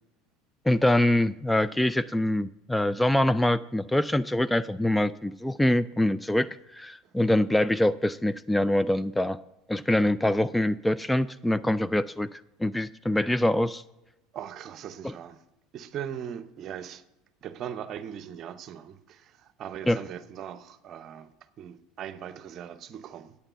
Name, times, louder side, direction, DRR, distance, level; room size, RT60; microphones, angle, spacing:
voice 1, 0.7-9.4 9.7-13.8 19.9-20.0, left 1 dB, 5° left, 0.3 m, -24 dB
voice 2, 14.3-15.4 15.7-17.0 17.4-21.3 21.6-23.4, right 9 dB, 45° right, 0.7 m, -39 dB
8.9 x 8.5 x 5.6 m
hypercardioid pair, 75°, 0 cm